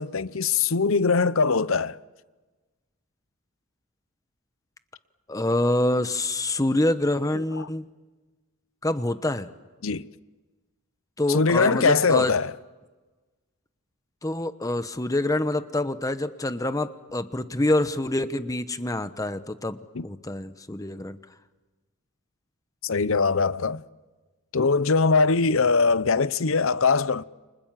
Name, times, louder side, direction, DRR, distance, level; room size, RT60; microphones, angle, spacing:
voice 1, 0.0-2.0 7.3-7.7 9.8-10.1 11.3-12.5 19.9-20.0 22.8-23.8 24.5-27.2, left 4 dB, 65° left, 0.8 m, -22 dB
voice 2, 5.3-7.9 8.8-9.5 11.2-12.3 14.2-19.8 20.0-21.2, left 1 dB, 15° left, 0.9 m, -26 dB
30.0 x 26.0 x 7.5 m
head